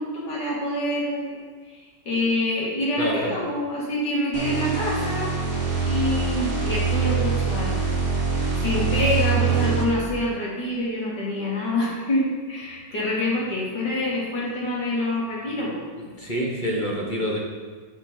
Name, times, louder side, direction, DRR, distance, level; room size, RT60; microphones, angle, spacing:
voice 1, 0.0-5.4 5.8-7.8 8.6-15.9, left 1 dB, 70° left, -6 dB, 2.8 m, -26 dB
voice 2, 3.0-3.3 16.0-17.4, equal, 30° left, -2 dB, 1.3 m, -27 dB
sound 1, 4.3-10.1, right 5 dB, 65° right, 3.0 m, -24 dB
8.1 x 6.8 x 4.4 m, 1.5 s
omnidirectional pair, 1.9 m